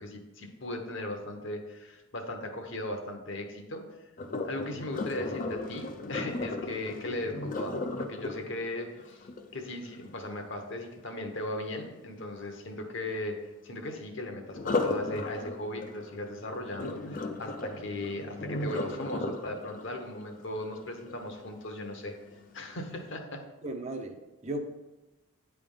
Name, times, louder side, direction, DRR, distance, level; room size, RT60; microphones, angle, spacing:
voice 1, 0.0-3.8 4.4-13.4 13.6-22.1 22.5-23.4, left 1 dB, 55° left, 4 dB, 1.0 m, -37 dB
Sink (filling or washing), 4.2-10.1 14.5-21.6 22.1-22.4 22.9-23.0, left 2 dB, 35° left, 0.5 m, -36 dB
voice 2, 23.6-24.6, right 1 dB, 30° right, 4 dB, 0.6 m, -36 dB
9.4 x 3.4 x 5.4 m, 1.0 s
head